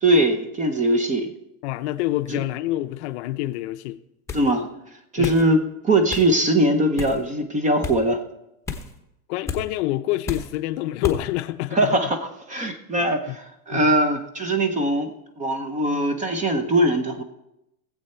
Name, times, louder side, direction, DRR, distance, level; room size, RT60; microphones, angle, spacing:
voice 1, 0.0-1.3 2.3-2.4 4.3-4.7 5.1-8.2 11.7-12.2 12.5-15.1 15.4-17.2, right 1 dB, 15° right, 0.8 m, -21 dB
voice 2, 1.6-4.0 5.2-5.4 9.3-11.9 13.0-13.4 13.7-13.9, left 16 dB, 50° left, 0.7 m, -27 dB
sound 1, 4.3-4.5 5.2-5.5 6.1-6.3 7.0-7.2 7.8-8.0 8.7-8.9 9.5-9.6 10.3-10.5 11.0-11.2, left 4 dB, 5° left, 1.0 m, -31 dB
18.5 x 7.8 x 4.4 m
supercardioid pair, 140°, 45 cm